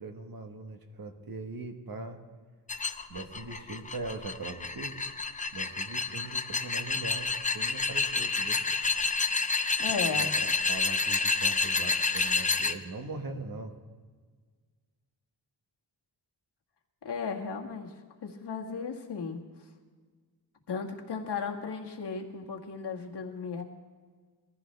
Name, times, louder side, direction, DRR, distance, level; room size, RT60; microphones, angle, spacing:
voice 1, 0.0-2.2 3.1-5.0 5.5-8.6 10.2-13.8, right 3 dB, 55° right, 5 dB, 1.4 m, -41 dB
sound 1, 2.7-12.7, left 4 dB, 20° left, 0.5 m, -29 dB
voice 2, 9.8-10.3 17.0-17.9 18.2-19.4 20.7-23.6, left 5 dB, 70° left, 1 dB, 1.8 m, -35 dB
21.5 x 14.5 x 3.4 m, 1.5 s
wide cardioid pair, 155°, 43 cm